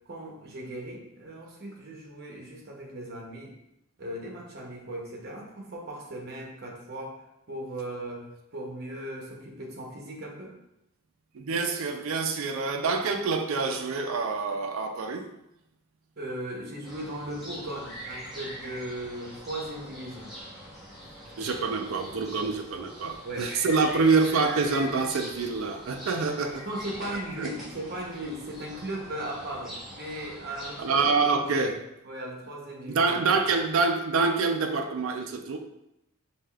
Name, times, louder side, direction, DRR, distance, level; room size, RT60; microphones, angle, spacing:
voice 1, 0.1-3.5 4.0-7.2 7.5-8.2 8.5-10.6 16.2-20.3 23.2-23.5 26.6-31.1 31.3-31.7 32.0-33.1, right 1 dB, 45° right, -1 dB, 0.8 m, -37 dB
voice 2, 11.3-15.3 21.4-26.6 27.4-27.5 30.8-31.8 32.9-35.6, right 4 dB, 65° right, 5 dB, 0.4 m, -26 dB
sound 1, 16.8-31.1, equal, ahead, 0.8 m, -43 dB
4.7 x 2.8 x 2.3 m, 0.85 s
head